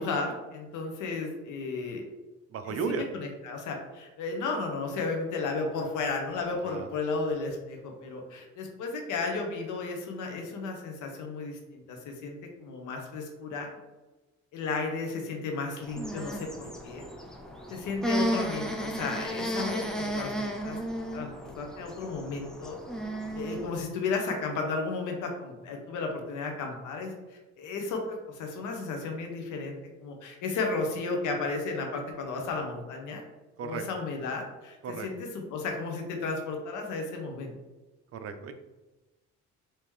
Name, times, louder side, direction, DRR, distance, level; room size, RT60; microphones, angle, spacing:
voice 1, 0.0-2.0 2.6-13.7 14.5-17.1 17.7-20.8 21.1-22.8 23.3-33.2 33.6-37.5, left 3 dB, 80° left, 2 dB, 0.7 m, -34 dB
voice 2, 2.5-3.0 6.7-6.9 33.6-33.8 34.8-35.1 38.2-38.5, right 5 dB, 50° right, 8 dB, 0.5 m, -33 dB
sound 1, 15.8-23.8, equal, ahead, 0.4 m, -34 dB
3.5 x 2.8 x 3.1 m, 1.1 s
cardioid pair, 90°, 30 cm